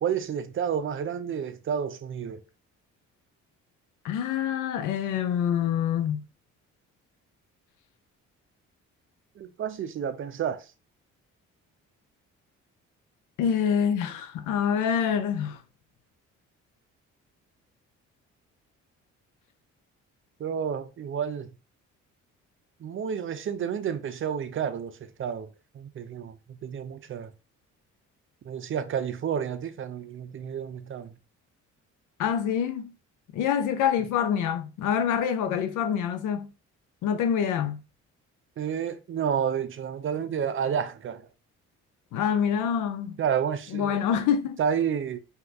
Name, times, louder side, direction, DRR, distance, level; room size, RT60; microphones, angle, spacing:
voice 1, 0.0-2.4 9.4-10.7 20.4-21.5 22.8-25.5 25.7-27.3 28.4-31.2 38.6-41.3 43.2-44.0 44.6-45.2, right 8 dB, 45° right, 0.5 m, -30 dB
voice 2, 4.0-6.2 13.4-15.6 32.2-32.8 33.3-36.5 37.0-37.8 42.1-43.2 43.7-44.6, left 8 dB, 90° left, 0.5 m, -26 dB
2.7 x 2.4 x 3.4 m
cardioid pair, 90°, 30 cm